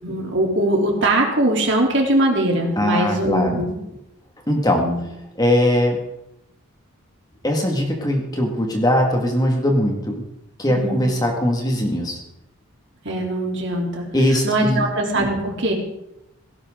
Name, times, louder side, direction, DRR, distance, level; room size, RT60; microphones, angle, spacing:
voice 1, 0.0-3.8 4.8-5.0 10.7-11.1 13.0-15.7, right 1 dB, 55° right, 0 dB, 3.4 m, -21 dB
voice 2, 2.8-3.6 4.5-4.8 5.4-6.0 7.4-10.2 10.6-12.2 14.1-14.8, left 1 dB, 15° left, 2 dB, 2.1 m, -20 dB
17.0 x 16.5 x 3.9 m, 0.87 s
head